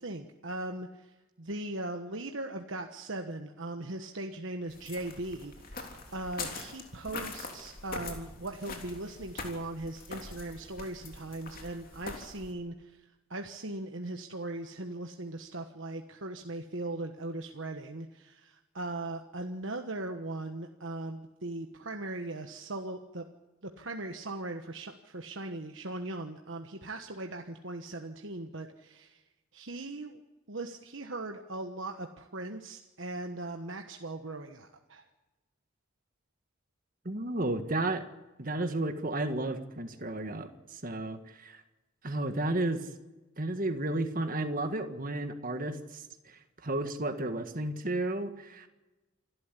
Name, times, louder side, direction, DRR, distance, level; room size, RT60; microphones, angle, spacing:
voice 1, 0.0-23.2 23.6-29.2 29.5-30.2 30.5-35.1, right 2 dB, 60° right, 4 dB, 1.3 m, -39 dB
sound 1, 4.7-12.5, left 3 dB, 40° left, 3.4 m, -43 dB
voice 2, 37.1-38.0 38.4-41.6 42.0-42.8 43.4-48.7, right 2 dB, 40° right, 8 dB, 1.7 m, -33 dB
28.0 x 12.5 x 8.5 m, 1.1 s
head